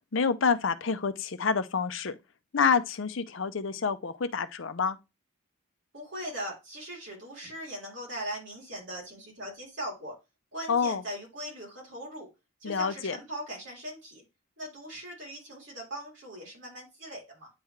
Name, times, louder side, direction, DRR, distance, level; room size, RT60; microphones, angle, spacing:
voice 1, 0.1-2.2 2.5-5.0 10.7-11.0 12.6-13.2, left 5 dB, 65° left, 0.6 m, -27 dB
voice 2, 5.9-10.1 10.5-12.3 12.6-14.2 14.6-17.5, right 1 dB, 60° right, 3.5 m, -40 dB
9.2 x 3.6 x 3.1 m
head